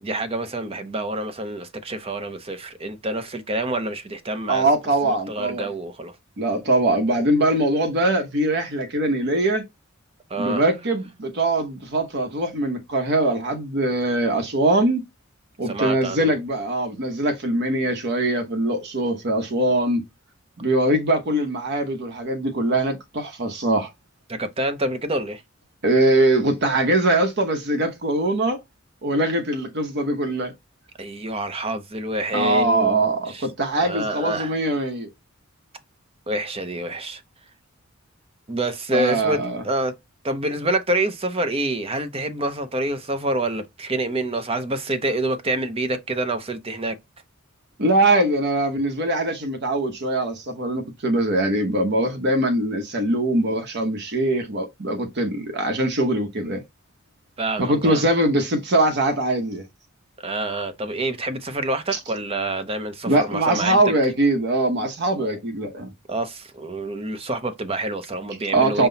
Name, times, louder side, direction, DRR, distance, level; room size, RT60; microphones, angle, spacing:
voice 1, 0.0-4.6 5.0-6.1 10.3-10.7 15.7-16.3 24.3-25.4 31.0-33.5 33.8-34.5 36.3-37.2 38.5-39.9 40.2-47.0 57.4-58.0 60.2-63.9 65.2-65.3 66.1-68.9, right 2 dB, 30° right, 0.7 m, -27 dB
voice 2, 4.5-5.7 6.4-9.6 10.4-15.0 15.6-20.0 20.6-23.9 25.8-28.6 29.0-30.5 32.3-35.1 38.9-39.6 47.8-56.6 57.6-59.6 61.9-62.0 63.1-65.9 68.5-68.9, right 1 dB, 55° right, 0.9 m, -22 dB
5.7 x 2.2 x 3.9 m
head